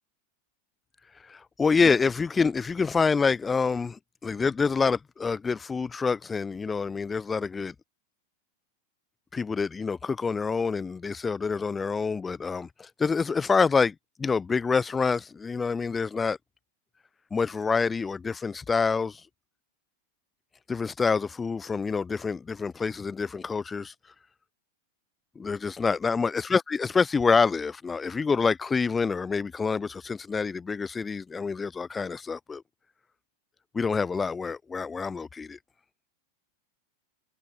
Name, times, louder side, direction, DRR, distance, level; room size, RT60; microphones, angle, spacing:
voice 1, 1.1-7.7 9.3-16.4 17.3-19.3 20.7-24.1 25.4-32.6 33.7-35.6, left 5 dB, 15° left, 0.5 m, -27 dB
figure-of-eight pair, 90°, 0 cm